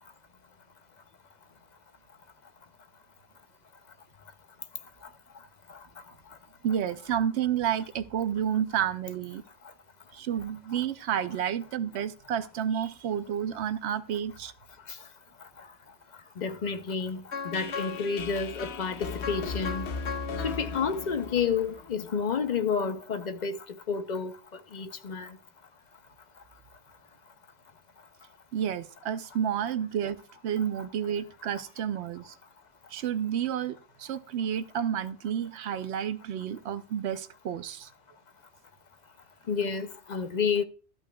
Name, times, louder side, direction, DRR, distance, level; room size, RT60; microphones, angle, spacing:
voice 1, 6.6-9.4 10.1-14.5 28.5-32.4 32.9-37.9, right 9 dB, 75° right, 0.9 m, -30 dB
voice 2, 16.4-19.9 20.4-25.3 39.5-40.6, left 6 dB, 50° left, 0.6 m, -30 dB
sound 1, 17.3-22.3, left 4 dB, 75° left, 1.1 m, -36 dB
13.0 x 8.1 x 2.2 m
omnidirectional pair, 1.1 m